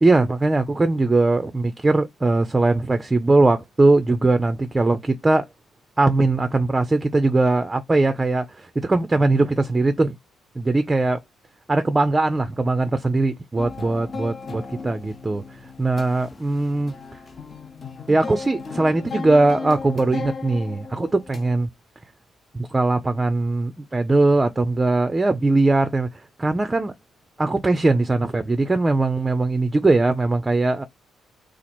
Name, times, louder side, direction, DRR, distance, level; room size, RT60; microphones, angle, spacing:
voice 1, 0.0-5.4 6.0-10.2 10.6-11.2 11.7-16.9 18.1-21.7 22.5-26.1 26.4-26.9 27.4-30.8, right 2 dB, 20° right, 0.4 m, -20 dB
sound 1, 13.6-21.6, left 4 dB, 35° left, 0.9 m, -36 dB
2.9 x 2.4 x 4.2 m
cardioid pair, 90°, 0 cm